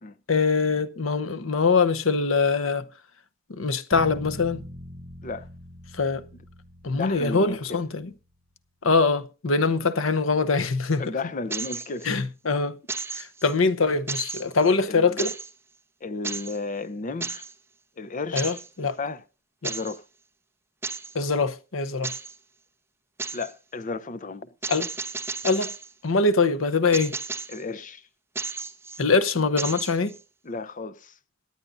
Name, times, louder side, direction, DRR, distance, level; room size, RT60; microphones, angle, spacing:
voice 1, 0.3-2.9 3.5-4.6 6.0-6.2 6.8-8.1 8.8-11.0 12.1-12.7 13.2-15.3 18.3-19.0 19.6-19.7 21.1-22.1 24.7-24.9 25.4-25.7 26.0-27.1 29.0-30.1, left 4 dB, 80° left, 0.9 m, -23 dB
sound 1, 3.9-8.0, equal, 45° right, 2.3 m, -42 dB
voice 2, 6.9-7.8 11.0-12.1 14.9-15.3 16.0-17.4 18.0-18.6 19.0-19.2 19.6-20.0 23.3-24.5 27.5-28.0 30.4-31.1, left 3 dB, 40° left, 0.7 m, -33 dB
sound 2, 11.5-12.2 12.9-13.5 14.1-14.7 15.2-15.5 16.2-16.6 17.2-17.5 18.4-18.7 19.6-20.0 20.8-21.1 22.0-22.4 23.2-23.5 24.6-25.9 26.9-27.6 28.4-29.0 29.6-30.2, right 4 dB, 15° right, 0.8 m, -33 dB
23.5 x 9.5 x 2.6 m
head